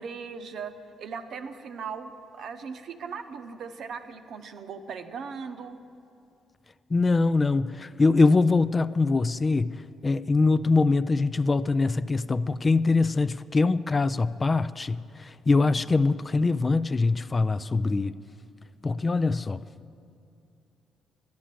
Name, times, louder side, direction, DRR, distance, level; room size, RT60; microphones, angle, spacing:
voice 1, 0.0-5.8, right 5 dB, 65° right, 8 dB, 0.8 m, -38 dB
voice 2, 6.9-9.8 10.0-18.1 18.8-19.6, left 3 dB, 30° left, 14 dB, 0.3 m, -23 dB
11.5 x 10.0 x 7.5 m, 2.5 s
cardioid pair, 90°, 0 cm